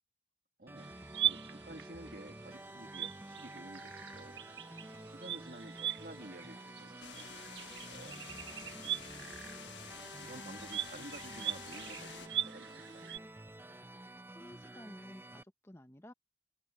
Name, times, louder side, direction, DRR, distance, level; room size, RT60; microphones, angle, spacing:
voice 1, 0.6-0.9 1.2-4.4 5.1-7.5 7.9-9.4 10.2-13.1, right 1 dB, 55° right, 1.9 m, -52 dB
sound 1, 0.7-15.4, right 1 dB, 10° right, 0.6 m, -50 dB
sound 2, 0.8-13.2, right 11 dB, 85° right, 1.3 m, -41 dB
sound 3, 7.0-12.3, left 8 dB, 90° left, 1.5 m, -50 dB
voice 2, 14.3-16.1, left 1 dB, 15° left, 1.0 m, -53 dB
open air
head